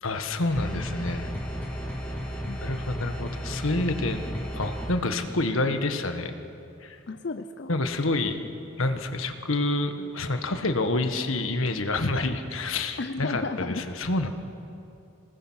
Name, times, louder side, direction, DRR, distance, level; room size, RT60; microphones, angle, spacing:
voice 1, 0.0-1.3 2.6-4.3 4.5-6.3 6.8-7.0 7.7-8.4 8.8-14.3, left 2 dB, 90° left, 7 dB, 1.5 m, -28 dB
sound 1, 0.5-4.9, equal, 5° left, 2.5 m, -33 dB
voice 2, 7.1-7.8 13.0-13.8, left 3 dB, 55° left, 7 dB, 0.7 m, -33 dB
26.5 x 19.5 x 6.4 m, 2.8 s
head